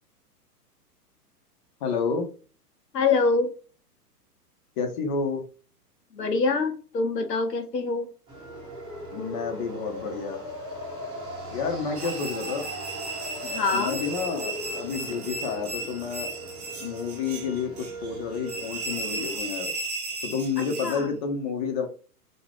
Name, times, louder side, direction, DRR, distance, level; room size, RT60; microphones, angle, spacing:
voice 1, 1.8-2.3 4.8-5.4 9.1-10.4 11.5-12.7 13.7-16.3 16.8-19.7 20.2-21.9, left 5 dB, 30° left, 3 dB, 0.5 m, -30 dB
voice 2, 2.9-3.5 6.1-8.1 13.4-14.0 20.6-21.1, left 4 dB, 85° left, 6 dB, 0.8 m, -25 dB
sound 1, 8.3-19.4, right 1 dB, 10° right, 0.9 m, -39 dB
sound 2, 12.0-21.1, right 2 dB, 30° right, 0.4 m, -35 dB
2.6 x 2.1 x 3.3 m, 0.37 s
figure-of-eight pair, 115°, 47 cm